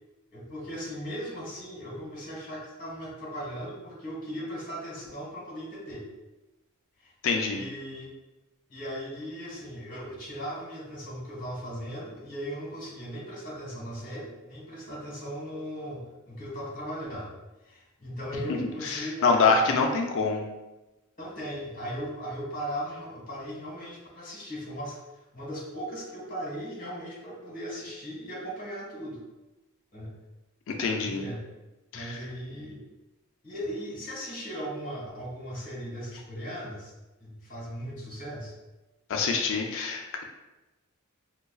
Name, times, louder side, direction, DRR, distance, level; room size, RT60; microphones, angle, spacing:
voice 1, 0.3-6.0 7.0-7.1 7.5-8.1 8.7-17.3 17.6-19.3 19.6-19.8 21.2-25.0 25.3-29.2 29.9-30.1 31.0-31.4 31.9-32.8 33.4-36.9 37.2-38.5, equal, 40° left, -4 dB, 1.3 m, -38 dB
voice 2, 7.2-7.6 18.8-20.4 30.7-31.2 31.9-32.2 39.1-40.2, left 4 dB, 65° left, 2 dB, 0.4 m, -25 dB
5.0 x 2.3 x 2.3 m, 1.0 s
head